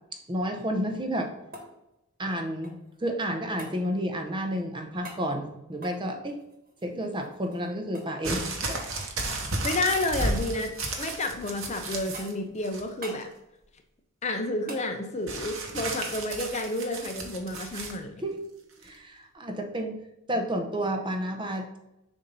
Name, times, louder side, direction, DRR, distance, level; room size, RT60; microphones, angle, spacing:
voice 1, 0.3-1.3 2.2-2.7 3.0-6.4 6.8-8.8 18.2-18.4 18.8-20.0 20.3-21.8, equal, 20° right, 4 dB, 0.6 m, -31 dB
sound 1, 0.9-3.0 3.6-3.8 5.0-5.3 5.7-7.7 7.9-8.1 8.4-8.6 9.0-9.9 10.1-10.7 11.2-11.7 12.1-12.5 13.0-13.3 14.7-14.9 17.2-17.3, right 1 dB, 40° right, 1.3 m, -46 dB
sound 2, 8.2-12.3 12.6-13.2 15.3-18.0 18.8-18.9, right 2 dB, 60° right, 1.0 m, -33 dB
voice 2, 9.6-13.3 14.2-18.2, left 2 dB, 30° left, 6 dB, 0.5 m, -30 dB
6.9 x 2.7 x 5.2 m, 0.89 s
head